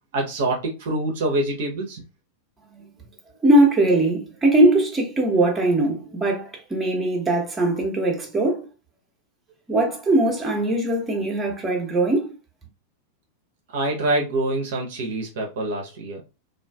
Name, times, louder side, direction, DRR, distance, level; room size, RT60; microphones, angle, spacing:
voice 1, 0.1-2.0 13.7-16.2, right 2 dB, 55° right, 0.6 m, -25 dB
voice 2, 3.4-8.7 9.7-12.3, right 1 dB, 15° right, 0.8 m, -20 dB
2.4 x 2.4 x 2.2 m
figure-of-eight pair, 90°, 0 cm